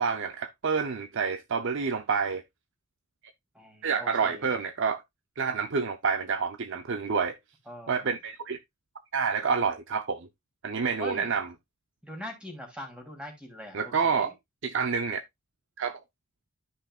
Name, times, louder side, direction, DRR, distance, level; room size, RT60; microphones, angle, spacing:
voice 1, 0.0-2.4 3.8-5.0 5.4-7.4 7.9-8.6 9.1-10.3 10.6-11.5 13.7-14.3 14.6-15.2 15.8-16.0, right 5 dB, 60° right, 0.6 m, -28 dB
voice 2, 3.5-4.5 7.7-8.2 11.0-11.3 12.0-14.3, left 1 dB, 5° right, 3.0 m, -43 dB
13.0 x 5.6 x 2.4 m
head